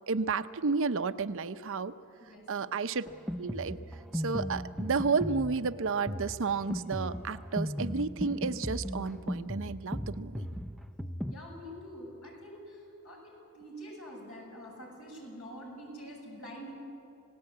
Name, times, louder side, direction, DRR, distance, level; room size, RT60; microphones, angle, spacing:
voice 1, 0.1-1.9 2.5-3.1 3.4-3.8 4.1-10.5, right 4 dB, 60° right, 11 dB, 0.7 m, -31 dB
voice 2, 2.2-2.7 11.3-16.7, equal, 70° left, -1 dB, 7.4 m, -46 dB
Drum kit, 3.1-11.4, equal, ahead, 0.6 m, -37 dB
28.0 x 18.0 x 8.6 m, 2.9 s
head